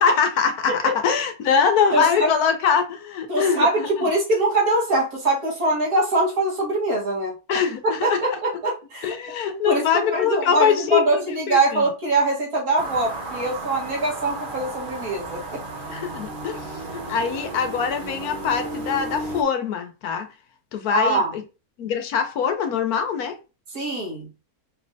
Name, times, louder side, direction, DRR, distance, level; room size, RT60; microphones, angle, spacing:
voice 1, 0.0-4.1 7.5-8.4 9.0-11.9 15.9-20.3 20.7-21.4 21.8-23.3, left 7 dB, 75° left, 1.3 m, -23 dB
voice 2, 1.9-2.3 3.3-7.3 8.0-8.1 8.4-9.1 9.6-15.6 20.9-21.3 23.7-24.3, right 2 dB, 75° right, 2.1 m, -23 dB
sound 1, 12.8-19.4, right 2 dB, 40° right, 0.9 m, -33 dB
5.1 x 3.2 x 2.7 m
omnidirectional pair, 1.6 m